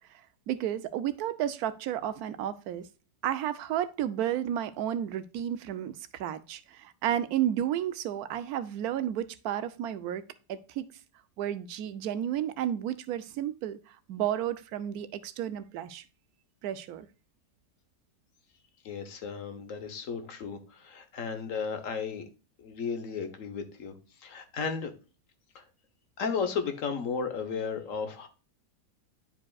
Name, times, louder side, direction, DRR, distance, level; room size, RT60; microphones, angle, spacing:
voice 1, 0.5-2.9 3.2-10.9 11.4-16.0 16.6-17.1, right 11 dB, 70° right, 13 dB, 1.1 m, -32 dB
voice 2, 18.8-22.2 22.6-23.9 24.2-24.9 25.5-25.6 26.2-28.3, left 5 dB, 55° left, 8 dB, 1.3 m, -34 dB
10.5 x 4.9 x 2.3 m, 0.33 s
omnidirectional pair, 1.8 m